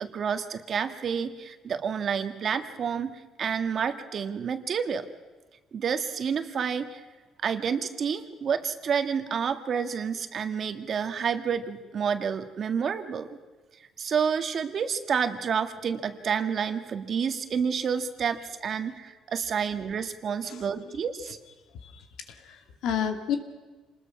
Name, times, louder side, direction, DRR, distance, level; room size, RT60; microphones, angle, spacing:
voice 1, 0.0-5.0 5.7-7.0 7.4-13.3 14.0-21.4, right 7 dB, 45° right, 8 dB, 1.7 m, -29 dB
voice 2, 20.5-20.9 21.8-23.4, left 8 dB, 80° left, 6 dB, 2.5 m, -32 dB
27.5 x 20.5 x 6.0 m, 1.3 s
cardioid pair, 130°, 0 cm